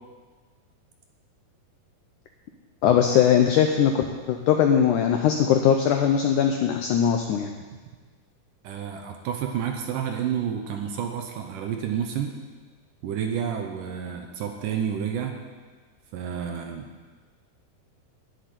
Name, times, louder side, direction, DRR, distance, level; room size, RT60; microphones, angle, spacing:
voice 1, 2.8-7.5, left 8 dB, 85° left, 4 dB, 1.8 m, -20 dB
voice 2, 8.6-12.4 13.0-15.4 16.1-16.9, right 8 dB, 70° right, 4 dB, 2.2 m, -30 dB
11.0 x 7.8 x 9.5 m, 1.4 s
omnidirectional pair, 4.5 m